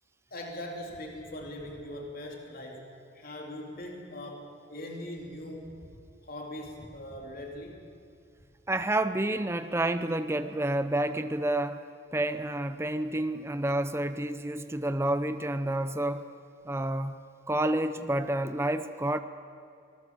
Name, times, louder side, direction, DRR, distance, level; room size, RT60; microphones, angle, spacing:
voice 1, 0.3-2.9 3.1-5.9 6.2-7.9, left 1 dB, 50° left, 1 dB, 3.4 m, -41 dB
voice 2, 8.7-11.8 12.1-16.3 16.7-17.2 17.5-19.2, right 1 dB, 15° right, 10 dB, 0.7 m, -29 dB
25.5 x 19.5 x 7.5 m, 2.4 s
head